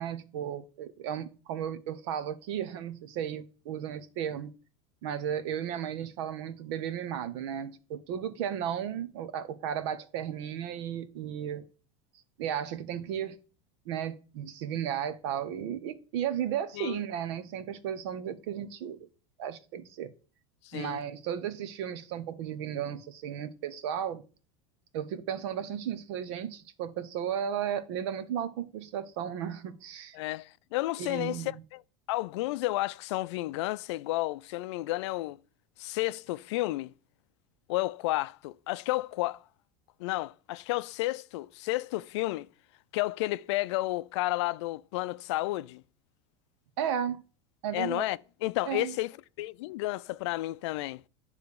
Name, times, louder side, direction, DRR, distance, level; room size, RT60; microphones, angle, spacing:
voice 1, 0.0-4.5 5.0-11.6 12.4-13.4 13.9-19.1 19.4-20.1 20.7-24.2 24.9-30.2 31.0-31.6 46.8-47.2 47.6-48.1 48.7-48.9, right 9 dB, 70° right, 1.0 m, -34 dB
voice 2, 20.6-21.0 30.1-31.8 32.1-35.4 35.8-36.9 37.7-39.4 40.0-42.5 42.9-45.8 47.7-49.1 49.4-51.0, left 18 dB, 75° left, 0.4 m, -32 dB
9.4 x 3.4 x 6.7 m
supercardioid pair, 115°, 15 cm